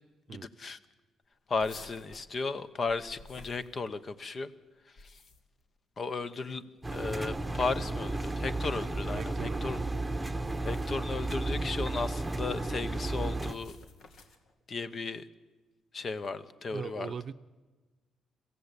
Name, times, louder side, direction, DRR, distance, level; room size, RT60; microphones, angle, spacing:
voice 1, 0.3-0.8 1.5-4.5 5.0-5.1 6.0-9.8 10.6-13.8 14.7-15.3 15.9-17.1, left 4 dB, 40° left, 1.0 m, -35 dB
sound 1, 1.6-4.2 4.8-5.6 6.8-7.5 8.3-8.5 10.3-11.1 12.0-12.5 13.4-14.5, left 3 dB, 65° left, 2.1 m, -54 dB
Engine, 6.8-13.5, right 2 dB, 10° right, 1.2 m, -33 dB
voice 2, 9.2-10.1 16.7-17.3, right 7 dB, 50° right, 0.6 m, -40 dB
22.0 x 15.5 x 9.8 m
cardioid pair, 110°, 0 cm